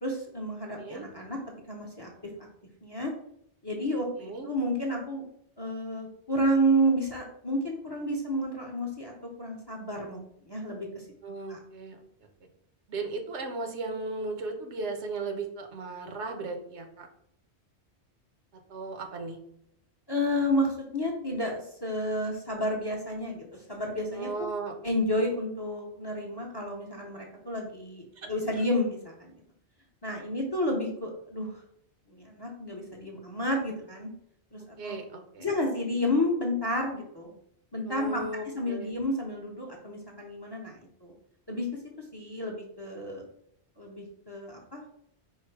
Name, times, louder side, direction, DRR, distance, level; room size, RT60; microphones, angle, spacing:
voice 1, 0.0-1.4 1.7-2.1 2.8-3.1 3.6-5.2 5.6-11.1 11.5-11.6 20.1-24.3 24.8-29.4 30.0-31.6 32.1-34.1 34.5-35.0 35.4-37.3 37.7-41.1 41.5-41.8 42.1-43.2 43.8-44.8, equal, 30° left, 0 dB, 0.6 m, -31 dB
voice 2, 0.8-1.1 4.2-4.5 11.2-12.0 12.9-17.1 18.7-19.4 24.1-24.7 28.2-28.7 34.8-35.5 37.9-38.9, right 3 dB, 85° right, 4 dB, 1.1 m, -36 dB
4.7 x 2.1 x 4.4 m, 0.70 s
omnidirectional pair, 1.2 m